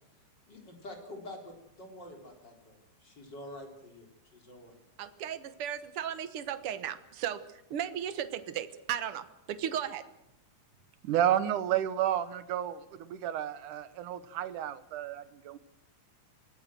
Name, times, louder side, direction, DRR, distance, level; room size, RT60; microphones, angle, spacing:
voice 1, 0.5-4.7, left 1 dB, 30° left, 3 dB, 4.4 m, -47 dB
voice 2, 5.0-10.1, right 10 dB, 55° right, 12 dB, 1.7 m, -36 dB
voice 3, 11.0-15.6, right 11 dB, 75° right, 14 dB, 2.5 m, -31 dB
24.5 x 18.5 x 7.7 m, 0.84 s
omnidirectional pair, 3.7 m